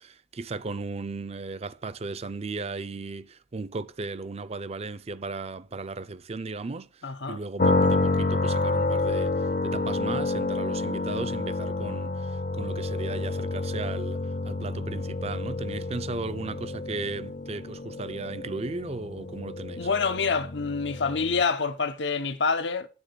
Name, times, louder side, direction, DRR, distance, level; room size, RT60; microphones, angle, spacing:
voice 1, 0.0-19.9, right 3 dB, 35° right, 0.5 m, -36 dB
voice 2, 7.0-7.4 19.8-22.9, left 5 dB, 80° left, 0.9 m, -27 dB
sound 1, 7.6-21.4, left 2 dB, 50° left, 0.6 m, -29 dB
9.7 x 4.0 x 6.7 m
head